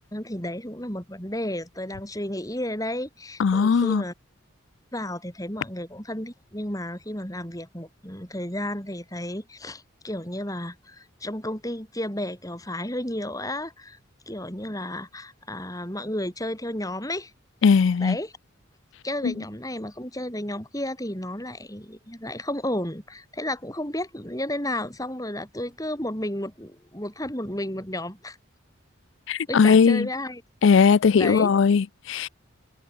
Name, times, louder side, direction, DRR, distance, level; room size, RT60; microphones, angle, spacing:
voice 1, 0.1-4.1 4.9-14.0 14.3-17.3 18.0-18.3 19.0-28.4 29.5-30.4 31.2-31.5, left 1 dB, 15° left, 7.8 m, -32 dB
voice 2, 3.4-4.0 17.6-18.2 19.2-19.3 29.3-30.1 30.6-32.3, left 5 dB, 65° left, 0.4 m, -19 dB
head